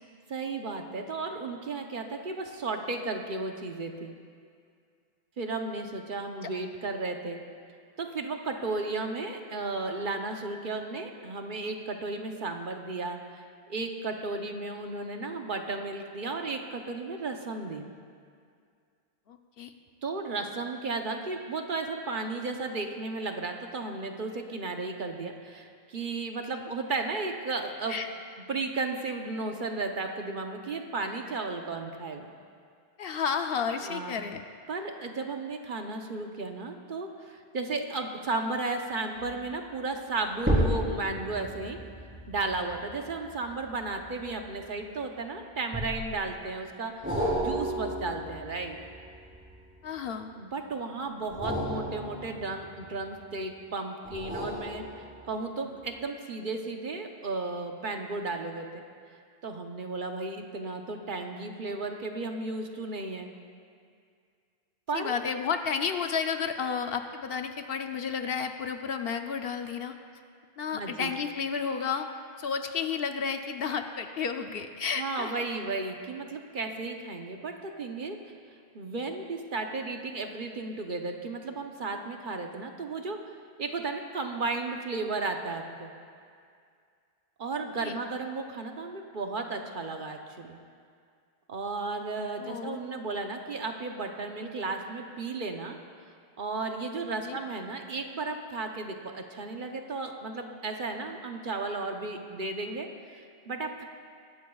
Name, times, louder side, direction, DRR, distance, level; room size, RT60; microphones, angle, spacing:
voice 1, 0.3-4.2 5.4-7.4 8.0-13.4 13.7-17.9 20.0-28.0 28.5-32.3 33.9-34.2 34.7-41.8 42.3-48.8 50.4-58.7 59.4-63.3 64.9-65.2 70.7-71.1 75.0-78.2 78.7-83.2 83.6-85.9 87.4-90.6 91.5-95.8 96.4-103.8, right 3 dB, 55° right, 4 dB, 1.0 m, -34 dB
voice 2, 19.3-19.7 27.9-28.1 33.0-34.4 49.8-50.3 64.9-69.9 70.6-72.1 72.4-75.3 87.8-88.0 92.4-92.8 97.2-97.4, left 6 dB, 70° left, 6 dB, 0.9 m, -32 dB
sound 1, 39.2-39.5 40.4-45.0 45.7-46.3 47.0-50.0 51.2-53.3 54.0-55.5 55.9-56.0, equal, 10° right, 3.8 m, -33 dB
21.0 x 12.5 x 2.4 m, 2.2 s
omnidirectional pair, 1.0 m